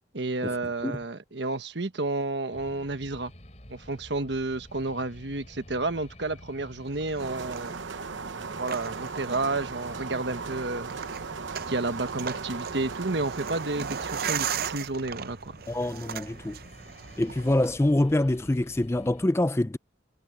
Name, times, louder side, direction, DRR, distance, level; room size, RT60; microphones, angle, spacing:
voice 1, 0.1-3.3 3.7-7.8 8.6-10.9 11.7-15.5, right 2 dB, 70° right, 1.3 m, -31 dB
sound 1, 2.5-19.3, equal, 40° left, 4.6 m, -49 dB
sound 2, 6.9-17.7, right 8 dB, 55° right, 0.6 m, -38 dB
sound 3, 7.2-14.8, right 5 dB, 90° right, 0.9 m, -37 dB
voice 2, 15.7-16.6 17.2-19.8, left 1 dB, 15° left, 0.4 m, -25 dB
head